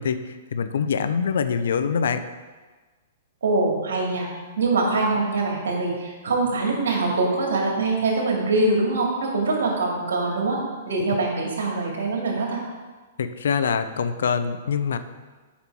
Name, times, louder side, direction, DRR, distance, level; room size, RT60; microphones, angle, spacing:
voice 1, 0.0-2.2 13.2-15.0, left 6 dB, 70° left, 11 dB, 0.5 m, -24 dB
voice 2, 3.4-4.3 4.6-12.6, right 3 dB, 70° right, 0 dB, 2.3 m, -23 dB
8.4 x 5.8 x 4.6 m, 1.3 s
hypercardioid pair, 115°, 0 cm